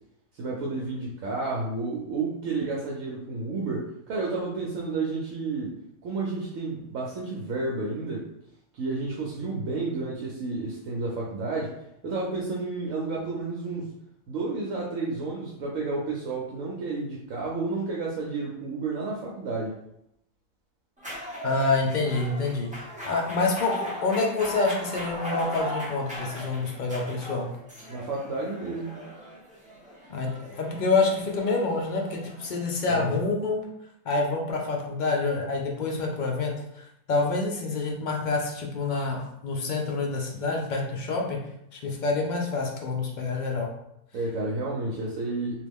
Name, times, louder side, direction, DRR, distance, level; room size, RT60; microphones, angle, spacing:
voice 1, 0.3-5.8 6.0-8.3 8.7-11.7 12.0-13.9 14.3-19.7 27.9-28.9 32.9-33.1 44.1-45.7, right 3 dB, 70° right, -3 dB, 1.0 m, -31 dB
sound 1, 21.0-33.0, equal, 10° right, 0.6 m, -39 dB
voice 2, 21.4-27.5 30.1-33.7 34.1-41.4 41.7-43.7, left 3 dB, 65° left, 0 dB, 0.4 m, -27 dB
3.0 x 2.5 x 3.5 m, 0.77 s
omnidirectional pair, 1.5 m